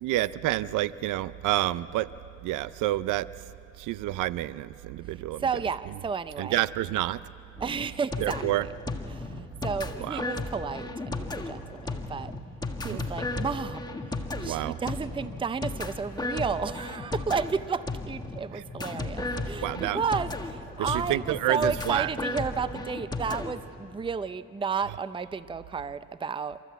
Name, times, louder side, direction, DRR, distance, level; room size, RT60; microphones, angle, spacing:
voice 1, 0.0-2.1 2.4-3.3 3.8-5.4 6.4-7.2 8.2-8.7 10.0-10.2 12.8-13.0 14.4-14.8 19.6-20.0 20.8-22.1, right 15 dB, 85° right, 17 dB, 0.5 m, -28 dB
voice 2, 5.4-6.6 7.6-8.7 9.1-12.3 12.8-13.8 14.4-26.6, right 5 dB, 15° right, 14 dB, 0.5 m, -32 dB
sound 1, 7.6-23.5, left 2 dB, 15° left, 1.6 m, -35 dB
28.5 x 14.0 x 8.2 m, 3.0 s
cardioid pair, 90°, 30 cm